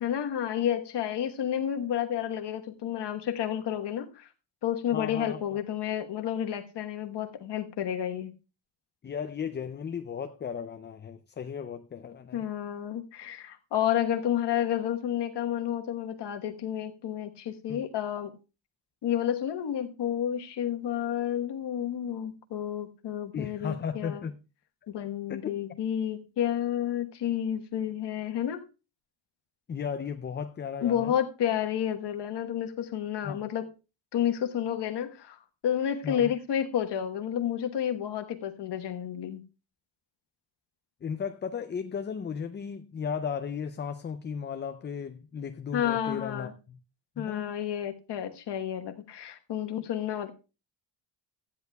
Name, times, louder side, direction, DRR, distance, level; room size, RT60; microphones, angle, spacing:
voice 1, 0.0-4.3 4.6-8.3 12.3-18.3 19.0-24.2 24.9-28.6 30.8-33.6 34.1-35.4 35.6-39.4 45.7-46.5 47.2-50.3, left 10 dB, 60° left, 1.3 m, -30 dB
voice 2, 4.9-5.6 9.0-12.4 17.7-17.8 23.3-24.4 25.3-25.5 29.7-31.1 33.2-33.4 36.0-36.3 41.0-46.8 47.2-47.5, left 7 dB, 25° left, 0.4 m, -35 dB
14.5 x 10.5 x 2.3 m
cardioid pair, 100°, 46 cm